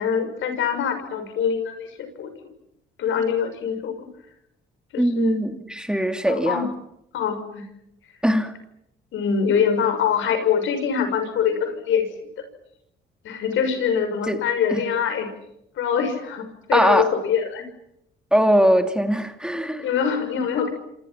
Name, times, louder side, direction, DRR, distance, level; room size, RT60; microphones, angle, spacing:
voice 1, 0.0-2.3 3.0-3.9 4.9-5.4 6.2-6.7 7.1-7.7 9.1-12.1 12.4-12.5 13.2-15.3 15.8-17.7 19.8-20.7, left 7 dB, 80° left, 8 dB, 6.2 m, -24 dB
voice 2, 5.0-6.7 8.2-8.5 14.3-14.4 14.7-14.8 16.7-17.1 18.3-20.0, equal, 5° right, 6 dB, 2.7 m, -21 dB
29.0 x 27.0 x 5.9 m, 0.80 s
cardioid pair, 90°, 20 cm